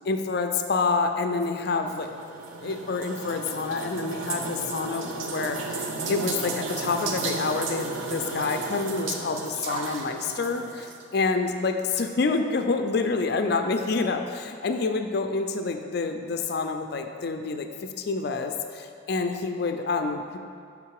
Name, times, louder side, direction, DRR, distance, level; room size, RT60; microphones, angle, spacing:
voice 1, 0.1-2.1 2.6-20.4, left 4 dB, 55° left, 6 dB, 0.4 m, -28 dB
sound 1, 1.4-11.0, right 3 dB, 90° right, 0.7 m, -34 dB
6.7 x 3.6 x 4.7 m, 2.3 s
head